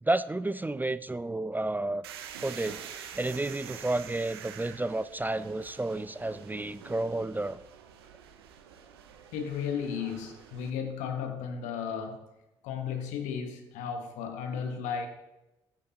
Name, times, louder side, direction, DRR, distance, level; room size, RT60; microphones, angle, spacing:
voice 1, 0.0-2.0 2.4-2.8 3.1-7.6, right 2 dB, 15° right, 0.4 m, -31 dB
sound 1, 2.0-10.7, right 8 dB, 85° right, 0.7 m, -47 dB
voice 2, 9.3-12.3 12.6-15.1, left 7 dB, 75° left, 1.2 m, -34 dB
15.0 x 8.9 x 2.9 m
hypercardioid pair, 40°, 13 cm